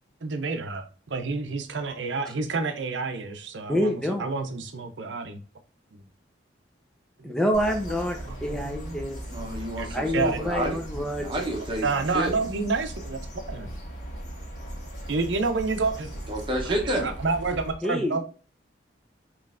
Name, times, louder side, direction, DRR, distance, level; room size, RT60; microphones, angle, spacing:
voice 1, 0.2-5.4 5.9-6.0 7.2-7.3 8.2-9.0 9.8-10.4 11.8-13.2 13.5-13.7 15.1-16.1 16.6-18.2, right 4 dB, 80° right, 7 dB, 0.6 m, -29 dB
voice 2, 3.7-4.3 7.2-9.2 9.9-11.3 17.8-18.2, equal, 5° left, 3 dB, 0.6 m, -27 dB
sound 1, 7.5-17.7, right 1 dB, 40° left, 1.7 m, -38 dB
voice 3, 9.3-12.3 16.3-17.1, right 1 dB, 25° right, 1 dB, 0.9 m, -30 dB
5.3 x 3.1 x 2.5 m, 0.39 s
head